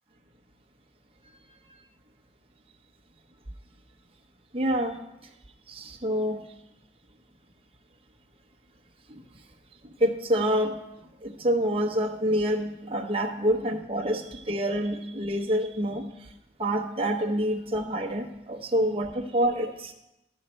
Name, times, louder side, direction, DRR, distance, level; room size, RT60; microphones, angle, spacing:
voice 1, 4.5-5.0 5.7-6.4 10.0-10.7 11.2-16.0 16.6-19.9, equal, 30° right, 3 dB, 0.9 m, -27 dB
13.0 x 4.4 x 6.3 m, 0.89 s
head